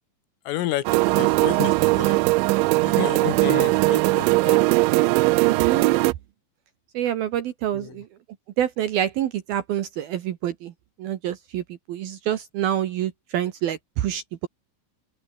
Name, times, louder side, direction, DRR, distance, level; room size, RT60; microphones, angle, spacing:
voice 1, 0.5-2.2 2.8-4.7 7.7-8.0, left 14 dB, 85° left, 4.2 m, -31 dB
sound 1, 0.9-6.1, right 24 dB, 85° right, 2.6 m, -19 dB
voice 2, 5.4-5.9 6.9-8.1 8.6-10.7 11.0-14.5, right 11 dB, 70° right, 2.5 m, -27 dB
open air
omnidirectional pair, 5.7 m